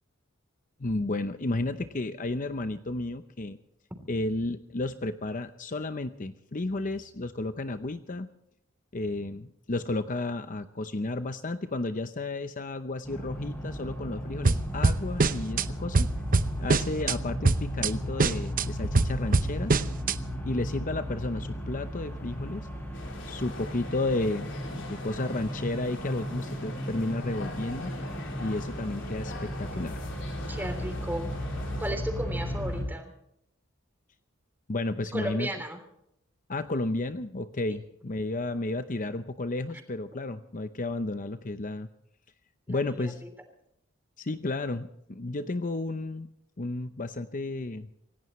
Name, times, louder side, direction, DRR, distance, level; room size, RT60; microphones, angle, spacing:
voice 1, 0.8-3.6 4.1-8.3 8.9-16.1 16.6-19.8 20.5-22.7 23.3-27.9 28.4-30.0 34.7-35.5 36.5-41.9 42.7-43.2 44.2-46.3 46.6-47.9, left 2 dB, 40° left, 10 dB, 0.7 m, -32 dB
sound 1, 13.0-32.8, equal, 10° left, 5.6 m, -35 dB
sound 2, 14.4-15.7 15.9-17.2 17.4-17.9 18.2-20.2, right 3 dB, 40° right, 0.7 m, -24 dB
sound 3, 22.9-31.9, left 2 dB, 60° left, 3.9 m, -43 dB
voice 2, 30.5-31.3 31.8-33.1 35.1-35.8 42.7-43.1, right 1 dB, 10° right, 6 dB, 3.4 m, -34 dB
26.5 x 17.0 x 3.2 m, 0.76 s
head